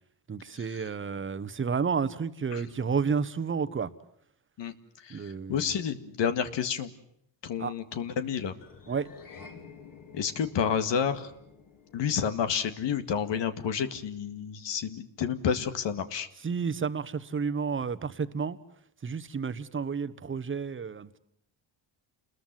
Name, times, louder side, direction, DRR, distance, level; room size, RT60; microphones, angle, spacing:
voice 1, 0.3-3.9 5.1-5.7 7.6-7.7 8.9-9.1 16.4-18.6 19.0-21.2, right 5 dB, 25° right, 1.2 m, -31 dB
voice 2, 4.6-6.9 7.4-8.5 10.1-11.3 11.9-16.3, left 7 dB, 70° left, 2.1 m, -30 dB
sound 1, 8.6-13.1, left 5 dB, 45° left, 4.5 m, -51 dB
29.5 x 21.5 x 7.6 m
cardioid pair, 135°, 45 cm